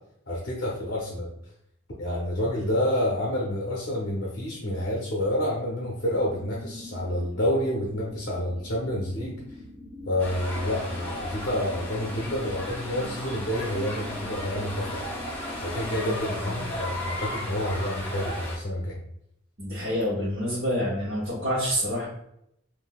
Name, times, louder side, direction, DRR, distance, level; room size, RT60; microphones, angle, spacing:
voice 1, 0.3-1.3 2.0-9.4 10.1-15.1 15.6-19.0, left 1 dB, 50° left, -3 dB, 0.6 m, -28 dB
sound 1, 6.0-15.8, left 1 dB, 25° right, 1.3 m, -43 dB
sound 2, 10.2-18.5, left 1 dB, 10° left, 0.8 m, -35 dB
voice 2, 19.6-22.1, equal, 55° right, -10 dB, 1.1 m, -28 dB
3.6 x 2.6 x 2.3 m, 0.76 s
head